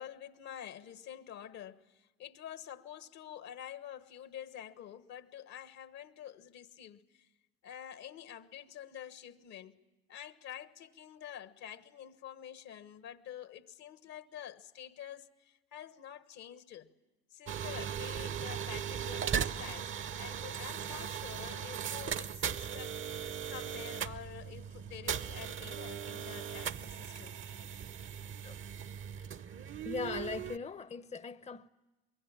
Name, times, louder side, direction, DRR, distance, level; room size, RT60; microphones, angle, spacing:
voice 1, 0.0-7.3 7.6-9.8 10.1-16.9 17.3-27.4, left 10 dB, 65° left, 1.3 m, -48 dB
sound 1, 17.5-30.6, right 8 dB, 45° right, 0.9 m, -38 dB
voice 2, 29.8-31.7, left 5 dB, 20° left, 0.7 m, -40 dB
25.0 x 22.5 x 8.6 m
hypercardioid pair, 60°, 29 cm